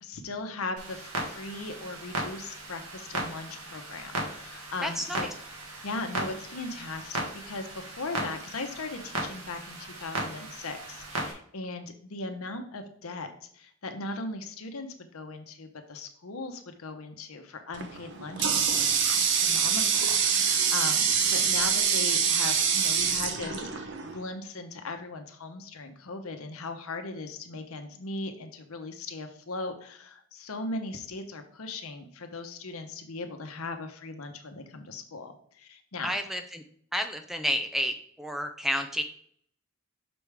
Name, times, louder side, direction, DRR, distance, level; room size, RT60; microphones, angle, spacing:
voice 1, 0.0-5.3 5.8-13.3 13.5-36.2, left 3 dB, 80° left, 6 dB, 0.9 m, -38 dB
Clock, 0.8-11.3, right 2 dB, 90° right, 1.6 m, -37 dB
voice 2, 4.8-5.3 21.6-21.7 36.0-36.6 36.9-39.0, equal, ahead, 7 dB, 0.4 m, -31 dB
Water tap faucet, 17.7-24.2, right 7 dB, 55° right, 0.7 m, -25 dB
6.1 x 3.4 x 4.8 m, 0.62 s
head